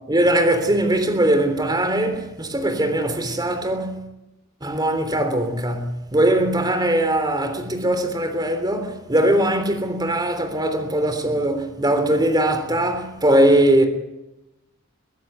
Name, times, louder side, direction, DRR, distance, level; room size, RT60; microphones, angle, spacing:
voice 1, 0.1-4.1 4.6-13.8, right 1 dB, 20° right, 3.4 m, -20 dB
23.0 x 15.0 x 9.5 m
head